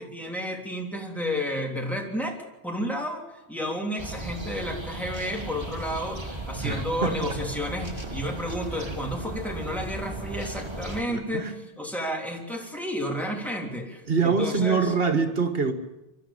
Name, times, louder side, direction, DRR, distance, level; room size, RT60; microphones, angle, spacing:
voice 1, 0.0-2.4 2.6-3.2 3.5-14.9, equal, ahead, 0 dB, 3.2 m, -31 dB
sound 1, 4.0-11.0, right 2 dB, 25° right, 2.0 m, -36 dB
voice 2, 6.6-7.4 11.1-11.6 14.1-15.7, right 5 dB, 60° right, 8 dB, 1.8 m, -25 dB
24.0 x 13.0 x 8.7 m, 0.99 s
omnidirectional pair, 1.1 m